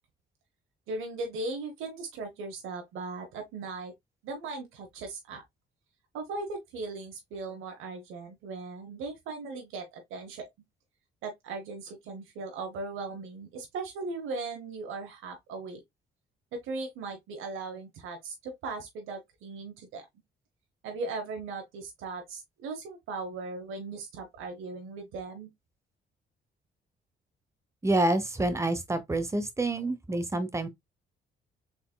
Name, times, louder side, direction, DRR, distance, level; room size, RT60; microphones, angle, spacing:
voice 1, 0.9-3.9 4.2-5.4 6.1-10.5 11.2-15.8 16.6-20.0 20.8-25.5, right 3 dB, 90° right, 0.9 m, -38 dB
voice 2, 27.8-30.7, right 2 dB, 15° right, 0.9 m, -28 dB
3.9 x 3.7 x 2.2 m
cardioid pair, 90°, 20 cm